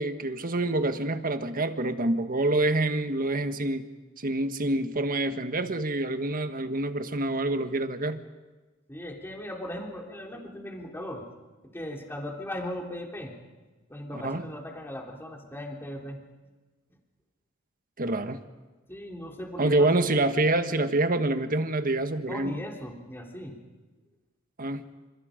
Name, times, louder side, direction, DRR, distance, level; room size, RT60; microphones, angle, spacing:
voice 1, 0.0-3.8 4.2-8.2 14.1-14.4 18.0-18.4 19.6-22.6 24.6-24.8, right 2 dB, 40° right, 8 dB, 1.6 m, -26 dB
voice 2, 8.9-11.2 11.7-13.4 13.9-16.2 18.9-20.0 22.3-23.6, left 1 dB, 10° left, 0 dB, 3.3 m, -38 dB
29.5 x 27.5 x 5.2 m, 1.3 s
head